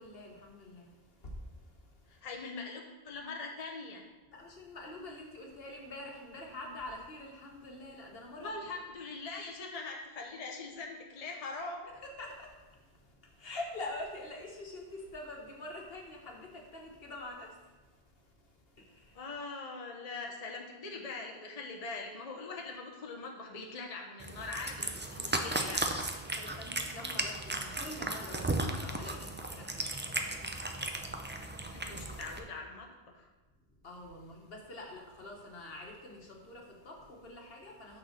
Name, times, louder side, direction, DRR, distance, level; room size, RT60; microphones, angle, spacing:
voice 1, 0.0-2.2 4.3-8.5 12.0-19.3 26.2-31.9 33.7-38.0, left 2 dB, 65° left, 0 dB, 1.5 m, -46 dB
voice 2, 2.1-4.0 8.4-11.9 19.1-26.0 31.7-33.3, left 3 dB, 40° left, 1 dB, 0.8 m, -42 dB
Cat, 24.2-32.4, right 2 dB, 20° right, 0.3 m, -36 dB
6.4 x 4.2 x 6.5 m, 1.2 s
omnidirectional pair, 1.1 m